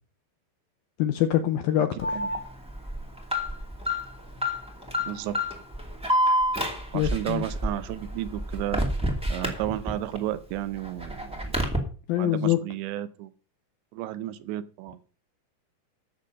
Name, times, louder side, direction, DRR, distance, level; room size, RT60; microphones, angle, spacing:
voice 1, 1.0-2.2 6.9-7.4 12.1-12.6, left 12 dB, 80° left, 2.1 m, -24 dB
Alarm, 2.0-10.2 10.5-11.8, equal, 5° right, 1.3 m, -28 dB
voice 2, 5.1-5.4 6.9-8.8 9.3-11.6 12.2-13.3 13.9-15.0, right 13 dB, 85° right, 3.1 m, -32 dB
13.0 x 7.6 x 5.3 m
omnidirectional pair, 5.1 m